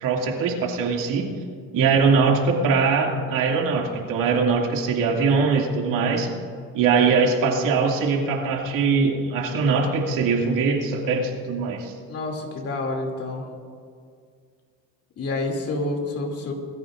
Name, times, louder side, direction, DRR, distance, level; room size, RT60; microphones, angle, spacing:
voice 1, 0.0-1.3 1.7-6.3 6.7-11.9, right 5 dB, 60° right, 0 dB, 2.5 m, -22 dB
voice 2, 12.1-13.4 15.2-16.5, left 2 dB, 40° left, 2 dB, 2.7 m, -28 dB
22.0 x 14.0 x 2.5 m, 2.1 s
cardioid pair, 120°, 35 cm